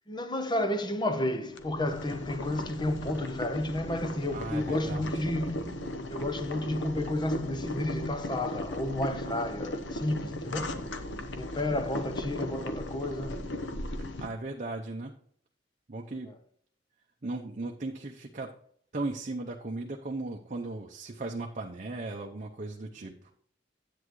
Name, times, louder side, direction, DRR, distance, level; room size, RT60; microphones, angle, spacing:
voice 1, 0.1-5.8 6.1-10.9 11.4-13.4 16.3-16.4, left 1 dB, 25° left, 0.9 m, -32 dB
Boiling, 1.5-14.3, left 1 dB, 75° left, 0.9 m, -37 dB
voice 2, 4.3-5.3 14.2-15.1 15.9-16.3 17.2-18.5 18.9-23.1, right 2 dB, 45° right, 0.7 m, -37 dB
10.5 x 8.4 x 3.1 m
head